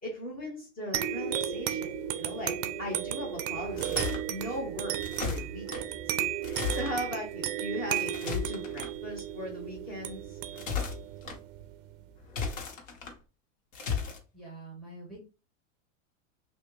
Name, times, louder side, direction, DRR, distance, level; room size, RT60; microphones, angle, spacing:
voice 1, 0.0-10.4, left 1 dB, 25° left, -2 dB, 1.5 m, -39 dB
sound 1, 0.9-12.0, right 10 dB, 45° right, 0.4 m, -34 dB
sound 2, 3.6-4.2 5.0-5.8 6.4-6.9 7.9-8.9 10.4-11.4 12.2-13.1 13.7-14.2, left 6 dB, 80° left, 1.2 m, -35 dB
voice 2, 14.3-15.2, right 2 dB, ahead, -5 dB, 1.3 m, -45 dB
3.3 x 2.6 x 3.1 m, 0.32 s
supercardioid pair, 145°, 38 cm